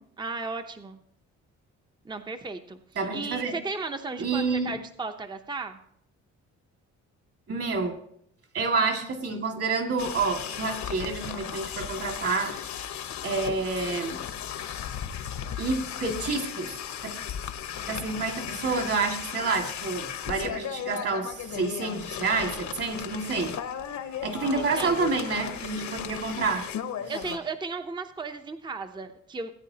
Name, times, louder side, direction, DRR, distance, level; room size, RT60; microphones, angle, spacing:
voice 1, 0.2-1.0 2.0-2.8 3.1-5.8 24.6-24.9 27.1-29.5, right 4 dB, 15° right, 7 dB, 0.7 m, -35 dB
voice 2, 3.0-3.6 4.2-4.8 7.5-8.0 8.5-12.6 13.2-14.2 15.6-16.8 17.0-17.1 17.9-23.5 24.2-26.7 27.0-27.1, right 4 dB, 50° right, 3 dB, 2.2 m, -28 dB
sound 1, 10.0-27.4, left 9 dB, 65° left, 1.0 m, -36 dB
17.0 x 9.1 x 2.8 m, 0.70 s
cardioid pair, 90°, 30 cm